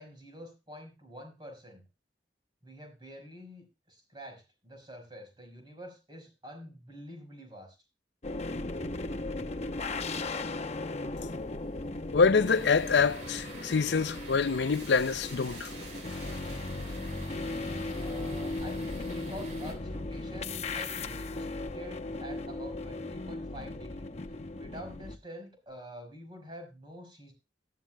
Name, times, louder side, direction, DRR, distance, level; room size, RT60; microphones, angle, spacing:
voice 1, 0.0-1.8 2.6-7.8 17.8-27.3, equal, 25° right, 4.8 m, -47 dB
sound 1, 8.2-25.2, left 2 dB, 40° left, 0.8 m, -37 dB
voice 2, 12.1-15.7, left 5 dB, 75° left, 0.6 m, -25 dB
sound 2, 12.2-23.4, right 1 dB, 75° right, 6.5 m, -51 dB
sound 3, 12.4-19.7, right 2 dB, 40° right, 2.8 m, -50 dB
18.5 x 10.5 x 2.3 m
head